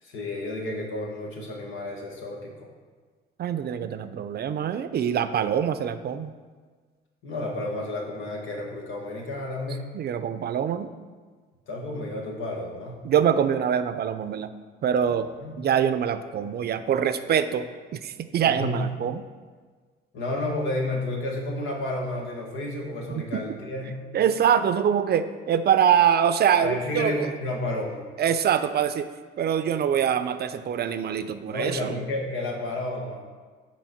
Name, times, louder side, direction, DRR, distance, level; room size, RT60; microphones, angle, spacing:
voice 1, 0.0-2.7 7.2-9.9 11.7-13.0 15.4-15.6 18.4-18.7 20.1-24.0 26.6-28.0 31.5-33.2, left 1 dB, 85° left, 0 dB, 1.4 m, -31 dB
voice 2, 3.4-6.3 9.9-10.9 13.0-14.5 14.8-15.3 15.6-19.2 23.1-23.4 24.1-27.3 28.2-29.1 29.4-32.0, right 8 dB, 55° right, 11 dB, 0.5 m, -24 dB
6.0 x 4.3 x 5.8 m, 1.5 s
cardioid pair, 90°, 20 cm